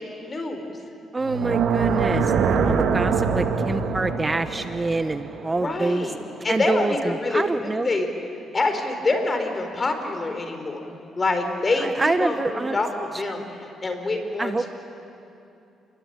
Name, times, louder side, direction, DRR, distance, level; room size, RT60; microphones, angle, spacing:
voice 1, 0.2-0.8 5.5-8.1 8.5-10.9 11.2-14.7, left 2 dB, 30° left, 6 dB, 4.0 m, -26 dB
voice 2, 1.1-6.1 6.5-7.9 11.8-12.8 14.4-14.7, right 3 dB, 20° right, 10 dB, 0.9 m, -26 dB
sound 1, 1.2-6.3, right 5 dB, 75° right, 2.2 m, -24 dB
28.0 x 22.0 x 8.8 m, 2.7 s
cardioid pair, 90°, 0 cm